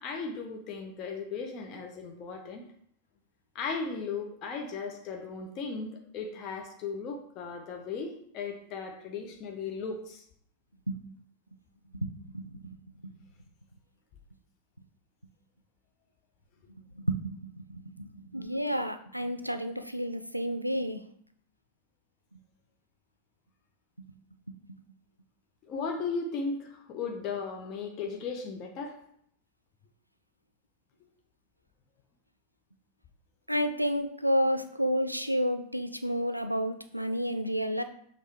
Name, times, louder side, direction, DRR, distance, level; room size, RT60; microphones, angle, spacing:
voice 1, 0.0-2.6 3.5-10.2 25.6-29.0, left 4 dB, 35° left, 2 dB, 0.6 m, -36 dB
voice 2, 11.9-13.1 17.0-21.0 33.5-37.8, equal, 90° right, 8 dB, 0.3 m, -31 dB
6.2 x 2.6 x 3.3 m, 0.68 s
figure-of-eight pair, 90°, 0 cm